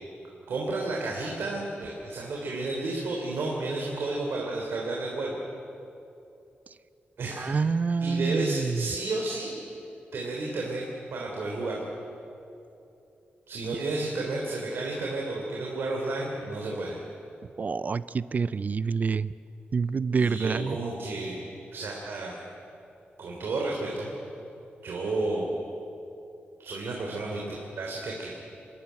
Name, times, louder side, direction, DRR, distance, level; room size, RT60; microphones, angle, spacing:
voice 1, 0.5-5.4 7.2-7.6 8.0-9.5 10.1-10.8 11.1-11.8 13.5-17.0 20.1-21.4 21.7-22.4 23.2-24.1 24.8-25.5 26.6-28.3, right 2 dB, 75° right, -2 dB, 3.3 m, -32 dB
voice 2, 7.4-8.8 17.6-19.3 19.7-20.8, right 5 dB, 40° right, 17 dB, 0.4 m, -27 dB
25.5 x 14.0 x 9.4 m, 2.8 s
wide cardioid pair, 110°, 4 cm